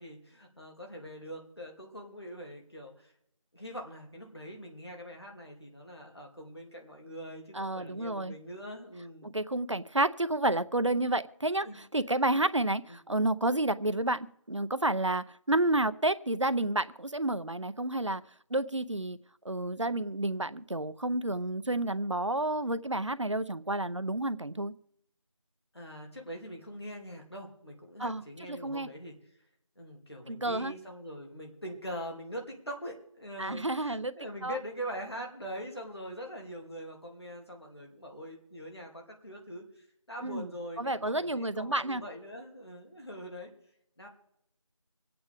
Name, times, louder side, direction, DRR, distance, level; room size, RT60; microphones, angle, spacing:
voice 1, 0.0-3.1 3.5-9.3 11.6-11.8 12.2-12.3 12.9-13.0 25.7-29.1 29.8-43.5 44.0-44.1, equal, 50° left, 0 dB, 2.8 m, -43 dB
voice 2, 7.5-8.4 9.2-18.2 18.5-19.2 19.4-24.7 28.0-28.2 28.5-28.9 30.3-30.7 33.4-34.1 34.4-34.6 40.2-40.5 40.8-42.0, right 1 dB, 60° right, 13 dB, 0.7 m, -30 dB
25.5 x 8.7 x 3.5 m, 0.74 s
figure-of-eight pair, 180°, 18 cm